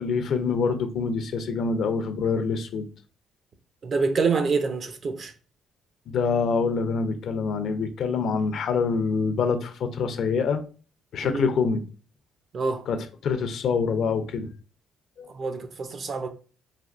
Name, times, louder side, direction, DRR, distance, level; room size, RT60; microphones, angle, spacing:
voice 1, 0.0-2.9 6.1-10.6 11.1-11.8 12.9-13.0 13.2-14.5 15.2-15.3, left 5 dB, 65° left, 0.4 m, -25 dB
voice 2, 3.8-5.3 11.2-11.4 12.5-12.9 15.3-16.3, right 4 dB, 50° right, 0.5 m, -26 dB
3.4 x 2.3 x 2.4 m
cardioid pair, 80°, 0 cm